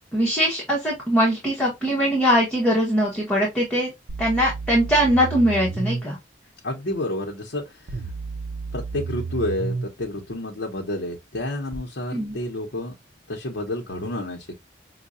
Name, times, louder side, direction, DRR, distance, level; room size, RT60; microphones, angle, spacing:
voice 1, 0.1-3.9 4.2-6.2 12.1-12.3, equal, 5° left, 1.1 m, -21 dB
sound 1, 4.1-6.0 7.9-9.9 11.7-11.8, right 4 dB, 75° right, 0.5 m, -31 dB
voice 2, 6.6-7.8 8.7-12.9 13.3-14.5, left 1 dB, 70° left, 0.8 m, -30 dB
5.5 x 2.3 x 2.4 m
head